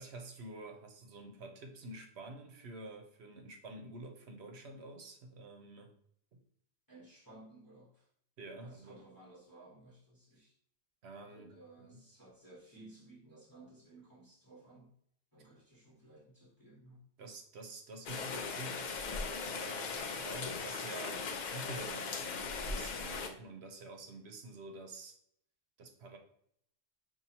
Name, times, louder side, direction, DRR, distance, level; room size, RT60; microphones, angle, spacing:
voice 1, 0.0-5.9 6.3-6.4 8.4-9.0 11.0-12.1 17.2-25.1 25.8-26.2, right 2 dB, 80° right, 4 dB, 1.0 m, -49 dB
voice 2, 6.9-8.1 8.6-10.5 11.3-14.9 15.3-17.1, right 2 dB, 20° left, -8 dB, 1.3 m, -57 dB
Rain, 18.1-23.3, left 4 dB, 55° left, 0.6 m, -39 dB
5.5 x 2.7 x 2.8 m, 0.68 s
omnidirectional pair, 1.1 m